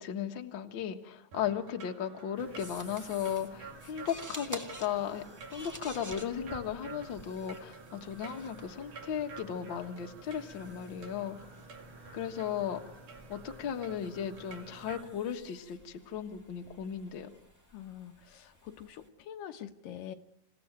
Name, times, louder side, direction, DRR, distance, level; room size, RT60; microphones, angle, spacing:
voice 1, 0.0-11.4 12.1-12.8 13.3-17.3, left 8 dB, 45° left, 4 dB, 1.7 m, -36 dB
sound 1, 1.3-15.0, right 5 dB, 65° right, 3.7 m, -51 dB
sound 2, 2.4-15.0, right 1 dB, 40° right, 3.5 m, -54 dB
sound 3, 2.6-19.1, right 1 dB, 25° right, 0.4 m, -51 dB
voice 2, 17.7-20.2, left 10 dB, 85° left, 6 dB, 2.7 m, -45 dB
27.5 x 16.5 x 9.1 m, 0.88 s
omnidirectional pair, 3.8 m